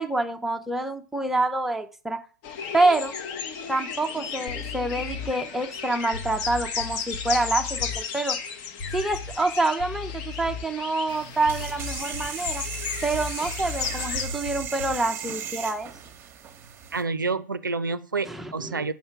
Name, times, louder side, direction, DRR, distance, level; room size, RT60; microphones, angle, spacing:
voice 1, 0.0-2.2 2.7-3.1 3.7-8.4 8.9-12.6 13.0-15.9 18.2-18.9, right 2 dB, ahead, 5 dB, 0.5 m, -27 dB
sound 1, 2.4-14.2, left 6 dB, 40° left, 0.8 m, -34 dB
sound 2, 4.5-5.4 6.1-8.0 8.8-9.5 9.8-10.8 11.4-15.1, left 4 dB, 55° left, 1.9 m, -37 dB
sound 3, 11.1-17.0, right 8 dB, 20° right, 0.9 m, -37 dB
voice 2, 16.9-18.9, right 4 dB, 80° right, 13 dB, 0.4 m, -28 dB
5.5 x 4.5 x 5.8 m, 0.38 s
figure-of-eight pair, 100°, 11 cm